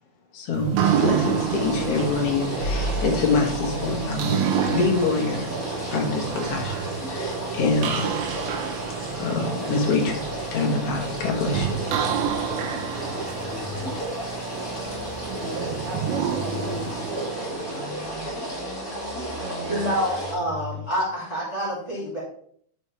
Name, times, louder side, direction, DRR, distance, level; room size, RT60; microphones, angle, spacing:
voice 1, 0.3-4.4 4.7-5.5 5.9-8.3 9.2-10.2 10.5-11.7, left 3 dB, 55° left, 1 dB, 1.9 m, -25 dB
sound 1, 0.5-18.4, right 7 dB, 80° right, 2.7 m, -29 dB
sound 2, 0.8-20.3, right 1 dB, 30° left, 4.4 m, -33 dB
sound 3, 3.8-11.5 11.8-14.0 14.5-17.0 17.5-20.9, left 5 dB, 70° left, 5.9 m, -42 dB
voice 2, 15.3-17.6 19.4-20.2, right 4 dB, 60° right, 2 dB, 2.0 m, -39 dB
voice 3, 19.7-22.2, equal, 10° right, -7 dB, 2.1 m, -27 dB
11.5 x 5.0 x 3.3 m, 0.63 s
omnidirectional pair, 4.3 m